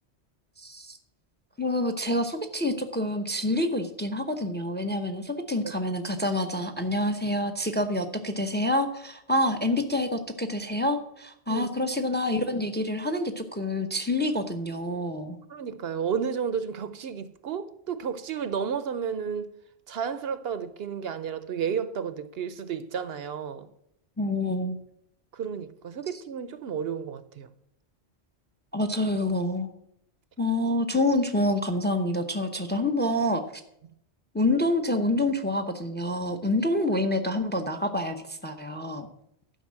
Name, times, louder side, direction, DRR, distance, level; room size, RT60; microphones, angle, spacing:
voice 1, 0.6-1.0 1.6-15.4 24.2-24.8 28.7-29.7 30.4-33.4 34.3-39.1, left 1 dB, 10° left, 0.7 m, -27 dB
voice 2, 15.5-19.5 19.9-23.7 25.3-27.5, right 7 dB, 65° right, 0.8 m, -32 dB
12.0 x 5.4 x 7.4 m
omnidirectional pair, 1.1 m